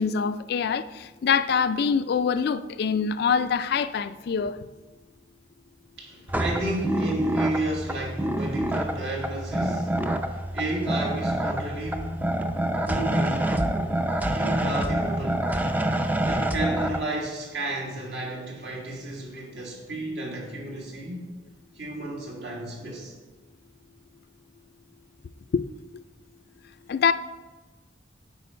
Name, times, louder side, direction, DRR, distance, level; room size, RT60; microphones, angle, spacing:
voice 1, 0.0-4.6 25.5-25.6 26.9-27.1, left 6 dB, 60° left, 0.3 m, -24 dB
voice 2, 6.0-10.0 10.3-12.3 12.8-13.6 14.3-15.5 16.3-21.3 21.8-23.2, right 1 dB, 70° right, 1.8 m, -32 dB
sound 1, 6.3-17.0, right 1 dB, 10° right, 0.4 m, -27 dB
8.3 x 5.1 x 4.3 m
head